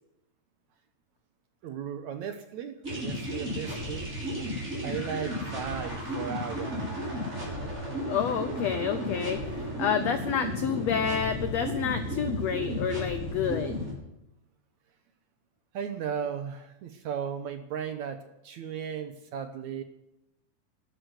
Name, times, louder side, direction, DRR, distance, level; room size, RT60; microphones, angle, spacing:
voice 1, 1.6-4.1 4.8-7.0 15.7-19.8, right 8 dB, 70° right, 7 dB, 1.9 m, -36 dB
sound 1, 2.8-13.9, equal, 20° right, 6.6 m, -33 dB
voice 2, 8.1-9.4 9.8-13.7, left 8 dB, 80° left, 9 dB, 1.5 m, -29 dB
13.0 x 12.5 x 8.1 m, 0.87 s
omnidirectional pair, 4.2 m